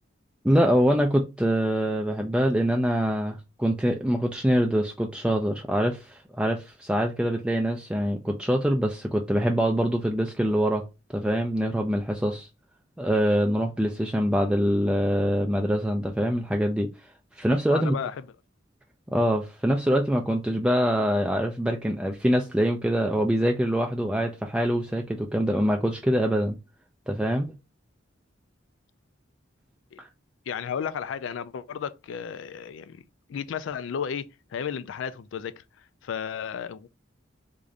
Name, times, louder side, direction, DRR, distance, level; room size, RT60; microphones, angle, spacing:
voice 1, 0.4-10.8 11.1-12.5 13.0-16.9 17.4-18.0 19.1-26.6 27.1-27.5, equal, 5° right, 0.3 m, -24 dB
voice 2, 17.7-18.2 29.9-30.0 30.5-33.0 33.3-35.6 36.0-36.9, left 7 dB, 70° left, 0.3 m, -33 dB
3.7 x 2.5 x 3.2 m
head